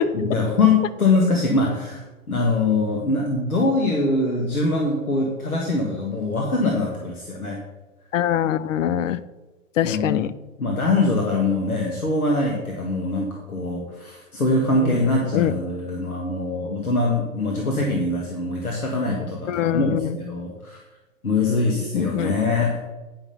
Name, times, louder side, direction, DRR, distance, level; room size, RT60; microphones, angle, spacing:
voice 1, 0.1-7.6 9.8-10.2 10.6-20.8 21.2-22.8, left 3 dB, 85° left, 0 dB, 1.8 m, -23 dB
voice 2, 8.1-9.2 9.8-10.3 14.8-15.0 15.3-15.5 19.5-20.1 21.9-22.4, left 11 dB, 60° left, 16 dB, 0.7 m, -23 dB
9.7 x 5.8 x 5.6 m, 1.1 s
figure-of-eight pair, 110°, 42 cm